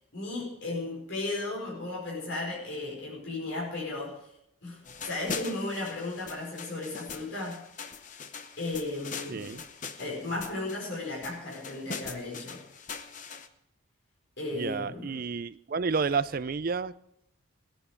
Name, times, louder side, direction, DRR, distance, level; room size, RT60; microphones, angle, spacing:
voice 1, 0.1-4.1 4.6-7.6 8.6-9.6 10.0-12.6 14.4-15.2, left 2 dB, 65° left, -5 dB, 5.2 m, -35 dB
sound 1, 4.9-13.5, left 5 dB, 35° left, 0.8 m, -42 dB
voice 2, 9.3-9.6 14.5-16.9, right 5 dB, 45° right, 16 dB, 0.4 m, -30 dB
17.5 x 10.0 x 5.1 m, 0.77 s
head